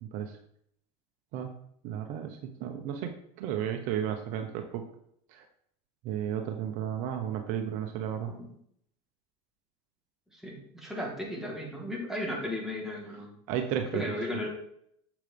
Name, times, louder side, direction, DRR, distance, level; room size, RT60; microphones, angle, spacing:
voice 1, 0.0-0.3 1.3-1.5 1.8-4.8 5.3-5.4 6.0-8.3 13.5-14.5, right 9 dB, 65° right, 5 dB, 1.1 m, -33 dB
voice 2, 10.3-13.3 13.9-14.5, left 1 dB, 5° right, -3 dB, 3.6 m, -35 dB
7.9 x 7.4 x 3.5 m, 0.69 s
supercardioid pair, 100°, 15 cm